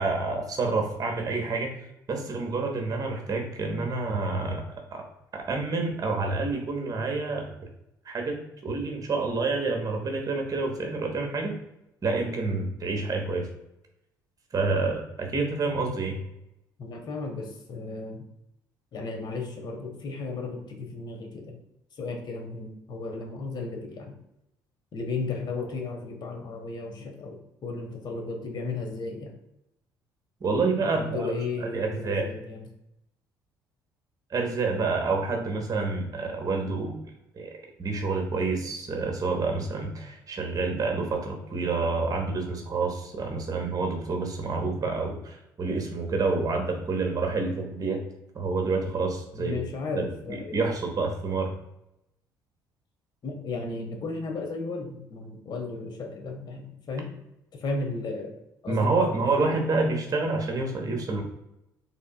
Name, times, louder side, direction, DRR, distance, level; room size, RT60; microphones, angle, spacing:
voice 1, 0.0-1.7 2.1-4.7 4.9-5.1 5.3-7.5 8.1-11.5 12.0-13.5 14.5-16.2 30.4-31.3 31.6-32.3 34.3-37.0 37.3-37.5 37.8-48.0 48.3-49.6 49.9-51.5 58.7-61.2, right 3 dB, 35° right, 2 dB, 1.0 m, -28 dB
voice 2, 16.8-18.2 18.9-21.6 22.0-24.1 24.9-29.3 30.8-32.7 49.4-50.6 53.2-57.1 57.5-58.3 58.6-59.0 59.4-59.6, left 3 dB, 45° left, 3 dB, 1.0 m, -34 dB
3.7 x 3.6 x 2.3 m, 0.86 s
figure-of-eight pair, 50°, 10 cm